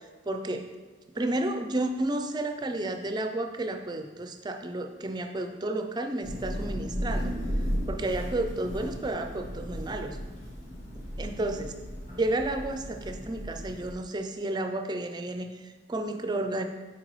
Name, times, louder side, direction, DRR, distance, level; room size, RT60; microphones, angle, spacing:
voice 1, 0.3-0.7 1.1-7.3 7.9-10.2 10.9-11.7 12.2-16.6, right 2 dB, 20° right, 6 dB, 0.4 m, -31 dB
Thunder / Rain, 6.2-13.9, equal, 40° left, 1.4 m, -35 dB
7.8 x 4.7 x 3.1 m, 1.3 s
head